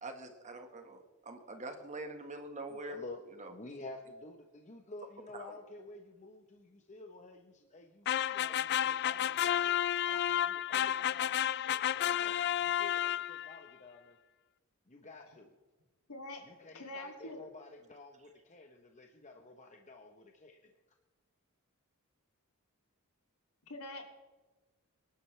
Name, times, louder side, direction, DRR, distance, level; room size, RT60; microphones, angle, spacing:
voice 1, 0.0-3.0 3.4-3.5 5.3-5.6, right 2 dB, 35° right, 6 dB, 1.6 m, -44 dB
voice 2, 2.7-9.8 10.1-11.4 11.6-14.2 14.9-15.5 16.4-20.7, left 2 dB, 35° left, 3 dB, 1.0 m, -51 dB
sound 1, 8.1-13.6, left 11 dB, 50° left, 0.4 m, -31 dB
voice 3, 16.1-16.4 16.7-17.4 23.7-24.2, left 1 dB, 80° left, 2 dB, 2.8 m, -44 dB
25.0 x 11.5 x 3.3 m, 1.2 s
head